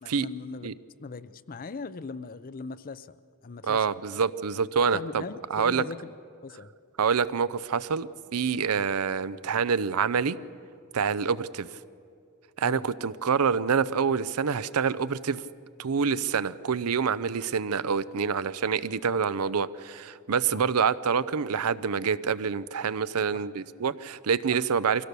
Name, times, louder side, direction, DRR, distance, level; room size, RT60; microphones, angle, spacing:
voice 1, 0.0-3.2 3.4-4.0 4.9-6.1 6.4-6.7 8.7-8.9 12.6-12.8 19.1-19.2 20.5-20.8 23.3-23.4, left 4 dB, 40° left, 16 dB, 0.5 m, -40 dB
voice 2, 3.6-5.2 5.5-5.8 7.0-10.4 10.9-11.7 12.6-15.4 15.8-25.0, right 6 dB, 80° right, 17 dB, 0.6 m, -26 dB
24.5 x 16.5 x 6.8 m, 2.4 s
head